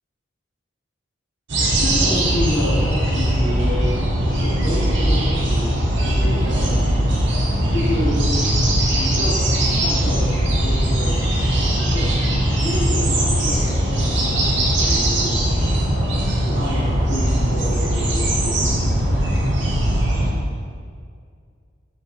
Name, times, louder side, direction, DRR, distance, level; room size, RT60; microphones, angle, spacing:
sound 1, 1.5-20.3, right 1 dB, 60° right, 1.1 m, -20 dB
voice 1, 1.8-3.9 4.2-6.8 7.3-8.3 8.9-11.2 11.6-12.1 12.6-15.4 15.9-18.8, left 1 dB, 75° left, -10 dB, 1.5 m, -29 dB
6.4 x 5.5 x 3.3 m, 2.1 s
head